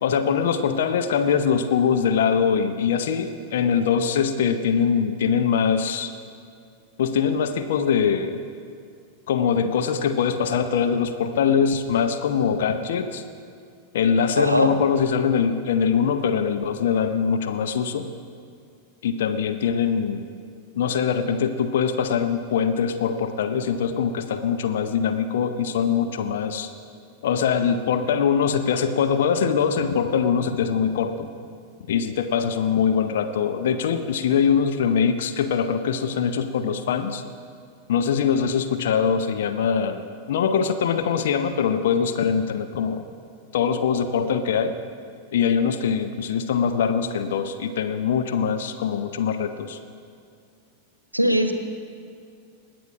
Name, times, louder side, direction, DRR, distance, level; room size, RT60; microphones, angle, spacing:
voice 1, 0.0-6.1 7.0-8.4 9.3-13.2 13.9-18.1 19.0-20.2 20.8-26.7 27.2-31.3 31.9-37.2 37.9-43.0 43.5-44.7 45.3-49.8, left 7 dB, 60° left, 7 dB, 0.7 m, -23 dB
voice 2, 14.4-14.7 51.1-51.5, equal, 90° right, 7 dB, 0.8 m, -20 dB
20.0 x 7.8 x 4.9 m, 2.4 s
figure-of-eight pair, 90°, 0 cm